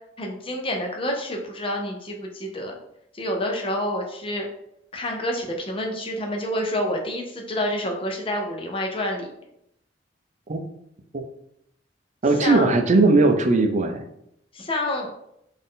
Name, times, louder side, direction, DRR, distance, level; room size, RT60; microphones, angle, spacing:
voice 1, 0.2-2.7 3.1-4.5 4.9-9.3 12.4-12.7 14.5-15.1, left 1 dB, 30° left, 1 dB, 0.7 m, -28 dB
voice 2, 12.2-14.0, right 3 dB, 40° right, 6 dB, 0.5 m, -19 dB
4.1 x 2.6 x 3.7 m, 0.75 s
head